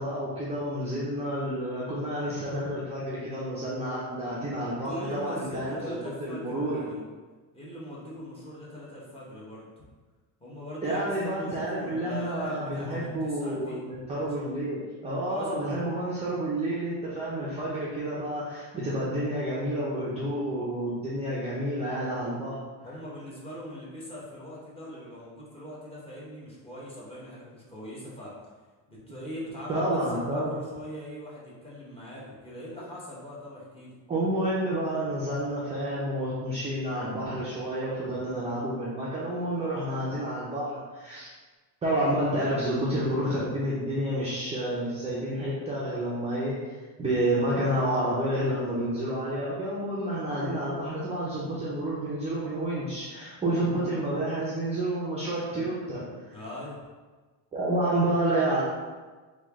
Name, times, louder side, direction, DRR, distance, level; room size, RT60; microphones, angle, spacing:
voice 1, 0.0-6.8 10.8-22.6 29.7-30.6 34.1-41.3 41.8-46.6 47.0-56.4 57.5-58.6, right 1 dB, 15° right, -8 dB, 0.4 m, -29 dB
voice 2, 4.7-7.0 7.5-9.7 10.4-13.8 14.2-14.6 15.2-15.7 22.8-28.4 28.9-30.0 30.3-33.9 56.3-56.9, equal, 15° left, -7 dB, 0.8 m, -41 dB
3.1 x 2.3 x 3.4 m, 1.3 s
cardioid pair, 145°, 42 cm